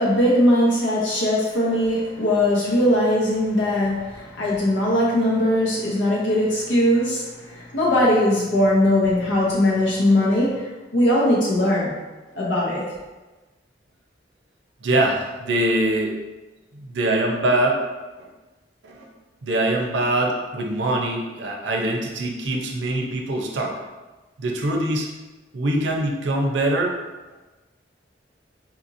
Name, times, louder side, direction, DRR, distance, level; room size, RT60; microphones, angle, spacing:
voice 1, 0.0-11.9 12.4-12.8, left 1 dB, 80° left, -5 dB, 0.8 m, -20 dB
voice 2, 14.8-16.1 16.7-17.8 18.2-18.3 18.8-19.1 19.4-23.7 24.4-25.1 25.5-26.9, right 1 dB, 85° right, 1 dB, 0.6 m, -23 dB
4.2 x 2.8 x 2.6 m, 1.2 s
head